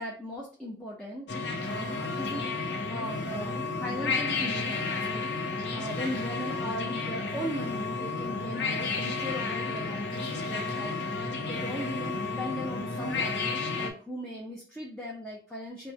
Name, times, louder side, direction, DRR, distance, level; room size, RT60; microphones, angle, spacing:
voice 1, 0.0-15.9, equal, 5° left, -4 dB, 0.5 m, -38 dB
sound 1, 1.3-13.9, left 3 dB, 85° left, 0.6 m, -32 dB
3.0 x 2.1 x 3.4 m, 0.40 s
head